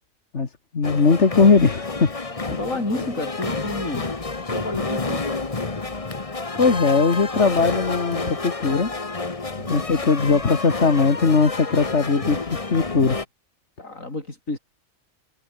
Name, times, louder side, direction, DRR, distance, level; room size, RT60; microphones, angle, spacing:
voice 1, 0.3-2.1 2.5-2.6 6.5-8.9 9.7-13.2, left 4 dB, 55° left, 2.3 m, -19 dB
sound 1, 0.8-13.2, left 3 dB, 25° left, 1.5 m, -29 dB
voice 2, 2.6-4.1 4.5-5.3 9.5-9.8 13.8-14.6, left 2 dB, 75° left, 5.9 m, -30 dB
omnidirectional pair, 1.4 m